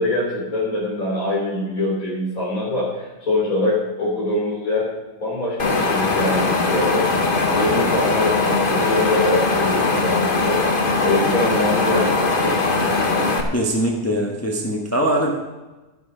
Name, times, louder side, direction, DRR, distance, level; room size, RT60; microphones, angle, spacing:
voice 1, 0.0-4.9 5.2-7.1 7.5-10.6 11.0-13.0, left 2 dB, 70° left, -5 dB, 4.0 m, -23 dB
Wind, 5.6-13.4, left 3 dB, 40° left, 1.4 m, -20 dB
voice 2, 13.5-15.3, right 1 dB, 10° left, -1 dB, 1.5 m, -21 dB
12.5 x 11.0 x 5.1 m, 1.1 s
omnidirectional pair, 1.5 m